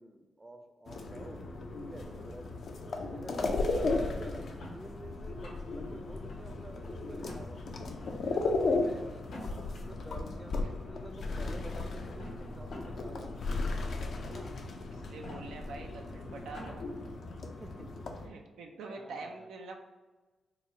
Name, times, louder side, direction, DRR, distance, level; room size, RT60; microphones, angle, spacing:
voice 1, 0.0-2.5 3.0-7.7 8.2-9.3 9.8-13.3 14.3-14.5 17.6-18.2 18.9-19.5, right 1 dB, 25° right, 5 dB, 0.5 m, -49 dB
sound 1, 0.9-18.3, left 3 dB, 70° left, 0.5 m, -36 dB
Store Cans Clunking, 3.9-4.8 5.2-5.9 6.3-6.9 7.2-7.4 7.9-8.2 9.1-9.8 10.8-10.9 12.0-13.0 13.4-13.5 14.2-14.5 15.0-15.4 15.9-16.0 16.3-16.8, left 1 dB, 85° left, 1.2 m, -48 dB
voice 2, 14.9-16.8 18.2-19.8, right 3 dB, 90° right, 2 dB, 0.4 m, -45 dB
3.9 x 2.1 x 4.4 m, 1.2 s
cardioid pair, 60°, 0 cm